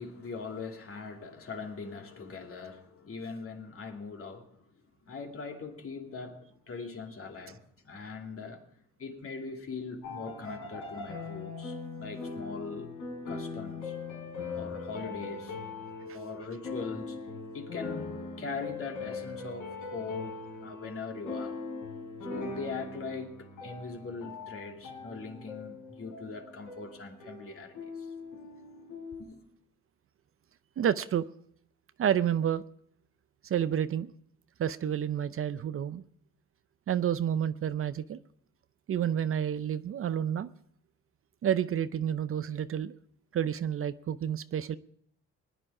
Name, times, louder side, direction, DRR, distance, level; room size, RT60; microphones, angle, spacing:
voice 1, 0.0-4.6 5.0-8.7 9.0-12.9 13.3-14.0 14.5-15.6 16.1-21.6 22.3-28.1 29.2-29.5, left 4 dB, 45° left, 2.5 m, -41 dB
sound 1, 10.0-29.2, left 4 dB, 85° left, 4.1 m, -41 dB
voice 2, 30.8-31.3 32.0-32.6 33.4-34.1 34.6-36.0 36.9-38.2 38.9-40.5 41.4-42.9 43.3-44.8, right 9 dB, 45° right, 0.6 m, -29 dB
20.0 x 10.0 x 4.8 m
cardioid pair, 90°, 30 cm